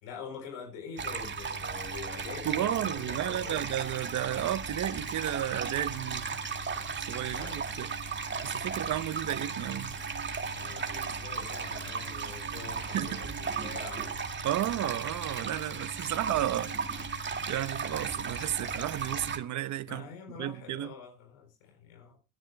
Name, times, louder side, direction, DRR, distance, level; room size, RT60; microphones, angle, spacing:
voice 1, 0.0-3.6 7.2-7.6 10.6-14.1 19.9-22.2, left 6 dB, 85° left, 4.3 m, -45 dB
sound 1, 1.0-19.4, right 5 dB, 30° right, 2.2 m, -36 dB
sound 2, 1.8-19.4, right 9 dB, 85° right, 6.4 m, -54 dB
voice 2, 2.4-6.5 7.0-7.9 8.4-10.0 12.9-13.2 14.4-16.8 17.5-20.1 20.4-20.9, right 12 dB, 55° right, 0.9 m, -33 dB
24.0 x 10.0 x 2.3 m
supercardioid pair, 90°, 35 cm